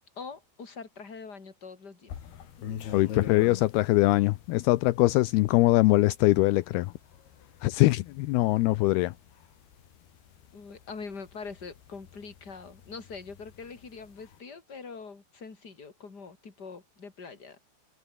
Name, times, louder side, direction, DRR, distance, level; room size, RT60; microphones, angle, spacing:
voice 1, 0.2-2.2 10.5-17.6, left 5 dB, 25° left, 3.8 m, -43 dB
sound 1, 2.1-14.4, left 9 dB, 60° left, 4.4 m, -46 dB
voice 2, 2.9-6.9 7.6-9.1, left 19 dB, 85° left, 2.3 m, -22 dB
omnidirectional pair, 5.3 m